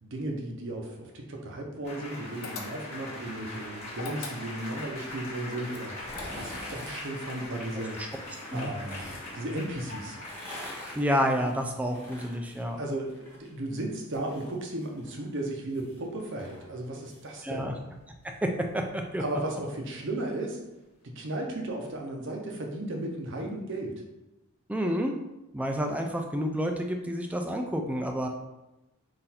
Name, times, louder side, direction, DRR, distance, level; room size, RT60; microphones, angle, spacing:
voice 1, 0.0-8.0 8.5-9.1 9.3-10.2 12.8-17.7 19.2-20.6 21.0-23.9, right 1 dB, 55° right, 1 dB, 0.7 m, -35 dB
sound 1, 1.8-12.6 14.5-14.6 14.9-15.2 19.2-19.5, left 2 dB, 30° left, 1.4 m, -42 dB
sound 2, 2.4-3.1 3.9-4.8 5.7-6.7, left 4 dB, 85° left, 0.6 m, -41 dB
sound 3, 5.9-7.1 8.2-9.3 10.1-13.5 13.8-17.2 17.6-17.7, left 1 dB, 10° left, 1.1 m, -45 dB
voice 2, 10.9-12.8 17.4-17.7 18.4-18.5 18.7-19.2 24.7-25.1 25.5-28.3, equal, 5° right, 3 dB, 0.3 m, -29 dB
3.9 x 2.6 x 4.2 m, 0.98 s
head